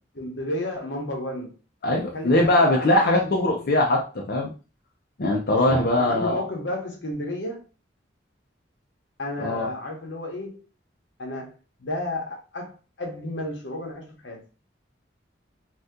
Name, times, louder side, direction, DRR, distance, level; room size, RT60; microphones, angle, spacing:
voice 1, 0.2-1.6 2.1-3.7 5.5-7.6 9.2-10.6 11.2-14.4, left 1 dB, 80° left, 1.0 m, -32 dB
voice 2, 1.8-4.5 5.2-6.4 9.4-9.7, left 1 dB, 55° left, 0.5 m, -21 dB
2.7 x 2.3 x 3.6 m
head